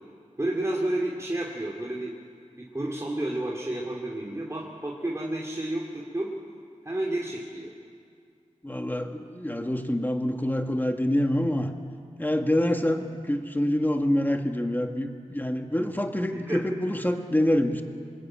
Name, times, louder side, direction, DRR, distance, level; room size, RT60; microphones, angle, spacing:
voice 1, 0.4-2.1 2.7-6.3 6.8-7.7 16.3-16.6, right 1 dB, 25° right, -3 dB, 2.7 m, -30 dB
voice 2, 8.6-11.7 12.2-17.8, left 1 dB, 15° left, 5 dB, 1.9 m, -26 dB
24.5 x 20.5 x 8.9 m, 2.2 s
wide cardioid pair, 70°, 13 cm